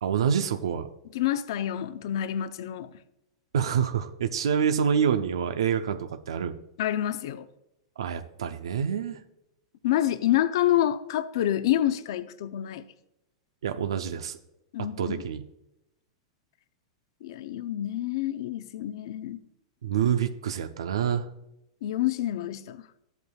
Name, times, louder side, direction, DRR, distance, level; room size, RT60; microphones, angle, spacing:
voice 1, 0.0-0.9 3.5-6.6 8.0-9.2 13.6-14.4 15.0-15.4 19.8-21.3, right 8 dB, 80° right, 0.6 m, -27 dB
voice 2, 1.1-2.9 6.8-7.5 9.8-12.8 14.7-15.2 17.2-19.4 21.8-22.8, left 12 dB, 70° left, 0.6 m, -27 dB
13.0 x 8.2 x 2.3 m
hypercardioid pair, 110°, 3 cm